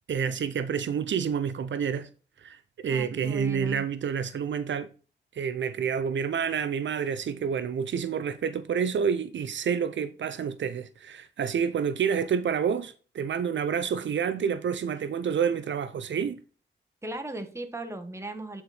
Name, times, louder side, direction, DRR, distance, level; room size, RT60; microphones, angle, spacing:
voice 1, 0.1-2.1 2.4-4.9 5.3-16.4, right 7 dB, 75° right, 0.5 m, -28 dB
voice 2, 2.9-3.9 17.0-18.6, right 2 dB, 15° right, 1.2 m, -37 dB
8.6 x 4.1 x 4.1 m
wide cardioid pair, 105°, 19 cm